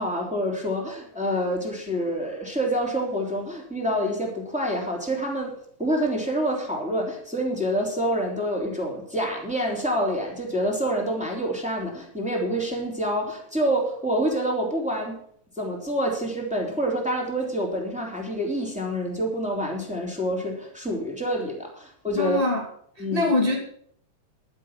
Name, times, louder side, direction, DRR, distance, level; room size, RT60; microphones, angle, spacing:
voice 1, 0.0-5.5 5.8-15.2 15.6-22.4 23.0-23.3, equal, ahead, 0 dB, 3.0 m, -27 dB
voice 2, 22.1-22.6 23.1-23.6, left 2 dB, 15° left, -2 dB, 2.4 m, -23 dB
11.5 x 10.0 x 6.0 m, 0.63 s
omnidirectional pair, 3.4 m